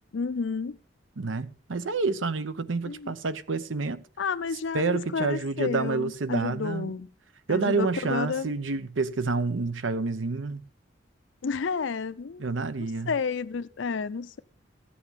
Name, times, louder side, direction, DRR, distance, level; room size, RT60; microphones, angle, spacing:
voice 1, 0.1-0.8 2.9-3.1 4.2-7.1 7.5-8.5 11.4-12.5 13.1-14.4, left 5 dB, 70° left, 0.5 m, -31 dB
voice 2, 1.2-4.0 4.7-6.9 7.5-10.6 12.4-13.1, right 4 dB, 90° right, 0.8 m, -28 dB
14.5 x 8.6 x 5.7 m
head